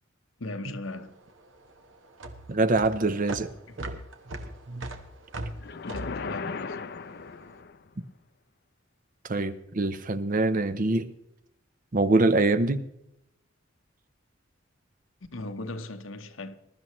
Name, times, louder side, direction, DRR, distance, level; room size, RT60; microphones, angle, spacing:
voice 1, 0.4-1.2 3.7-3.8 5.8-6.9 15.3-16.6, left 2 dB, 90° left, 1.1 m, -38 dB
sound 1, 0.9-7.4, right 1 dB, 70° right, 1.3 m, -40 dB
voice 2, 2.5-3.5 3.8-4.0 4.7-4.9 9.3-11.1 11.9-12.8, right 2 dB, 45° right, 0.7 m, -24 dB
sound 2, 5.6-7.9, left 4 dB, 55° left, 0.6 m, -37 dB
21.0 x 12.5 x 3.1 m
head